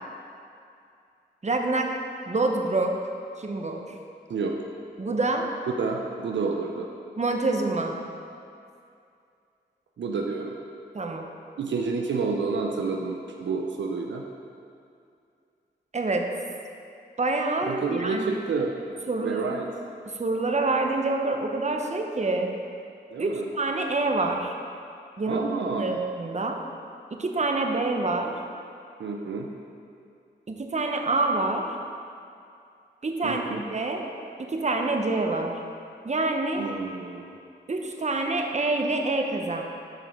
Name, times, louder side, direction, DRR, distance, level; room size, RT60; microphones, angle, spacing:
voice 1, 1.4-1.9 2.3-3.0 3.4-4.0 5.0-5.5 7.2-7.9 10.9-11.3 15.9-16.3 17.2-18.4 19.1-19.5 20.2-22.5 23.2-24.5 25.2-26.6 27.1-28.3 30.5-31.7 33.0-34.1 34.4-35.6 36.0-36.6 37.7-39.6, right 2 dB, 40° right, 3 dB, 0.9 m, -26 dB
voice 2, 5.8-6.9 10.0-10.5 11.6-14.2 17.7-18.7 19.2-19.7 23.1-23.5 25.3-26.0 29.0-29.5 33.2-33.6 36.6-37.3, right 4 dB, 75° right, 1 dB, 0.6 m, -29 dB
12.0 x 4.9 x 3.7 m, 2.5 s
cardioid pair, 50°, 19 cm